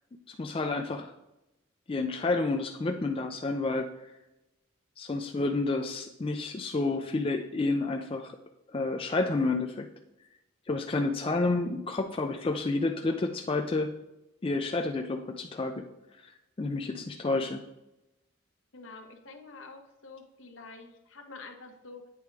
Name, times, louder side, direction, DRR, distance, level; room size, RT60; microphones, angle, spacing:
voice 1, 0.3-1.1 1.9-3.9 5.0-8.4 8.7-9.9 10.7-13.9 14.4-15.8 16.6-17.6, left 3 dB, 25° left, 4 dB, 0.3 m, -30 dB
voice 2, 18.7-22.1, left 3 dB, 65° left, 5 dB, 1.0 m, -47 dB
8.3 x 3.5 x 4.6 m, 0.92 s
head